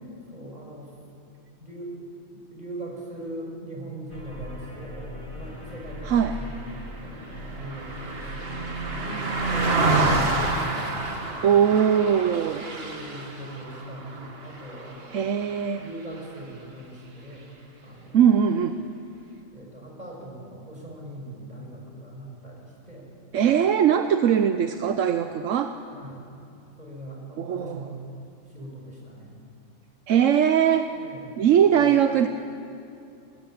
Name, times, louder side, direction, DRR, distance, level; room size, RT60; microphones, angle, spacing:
voice 1, 0.3-0.9 1.6-2.0 2.3-6.6 7.0-11.0 12.6-15.2 15.8-17.5 17.8-18.2 19.5-23.1 25.9-26.2 26.8-28.1 28.5-29.3 30.9-31.4 31.7-31.9, right 1 dB, 35° right, -1 dB, 5.8 m, -40 dB
sound 1, 4.1-10.6, equal, 25° left, 3.3 m, -39 dB
voice 2, 6.0-6.4 11.4-12.7 15.1-15.9 18.1-18.8 23.3-25.8 27.4-27.9 30.1-30.9 31.4-32.3, right 8 dB, 75° right, 8 dB, 1.1 m, -21 dB
Car passing by, 6.2-15.8 16.2-16.4, right 2 dB, 50° right, 2.1 m, -29 dB
20.5 x 19.5 x 8.8 m, 2.5 s
omnidirectional pair, 1.3 m